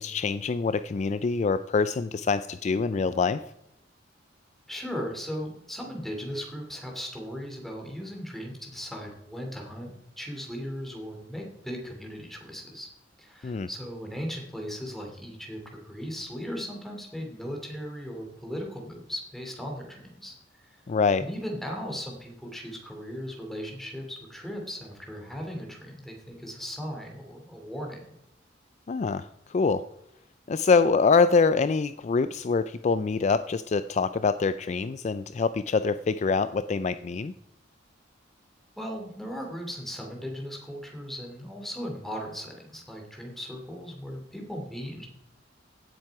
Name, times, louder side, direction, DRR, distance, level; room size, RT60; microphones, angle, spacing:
voice 1, 0.0-3.4 13.4-13.7 20.9-21.2 28.9-29.8 30.5-37.3, left 4 dB, 40° left, 12 dB, 0.4 m, -25 dB
voice 2, 4.7-12.9 13.2-20.4 20.6-20.8 21.2-28.1 38.8-45.1, equal, ahead, 1 dB, 2.7 m, -37 dB
16.5 x 7.6 x 4.7 m, 0.82 s
head